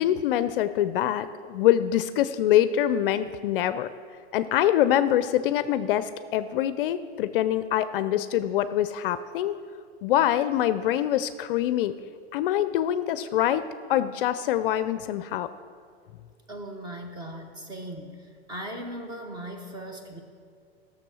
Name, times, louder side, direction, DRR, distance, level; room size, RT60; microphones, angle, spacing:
voice 1, 0.0-3.9 4.3-9.5 10.0-11.9 12.3-13.6 13.9-15.5, left 12 dB, 55° left, 13 dB, 0.5 m, -24 dB
voice 2, 16.5-18.2 18.5-20.2, right 1 dB, 15° right, 4 dB, 1.1 m, -38 dB
13.0 x 7.0 x 6.2 m, 2.2 s
supercardioid pair, 150°, 33 cm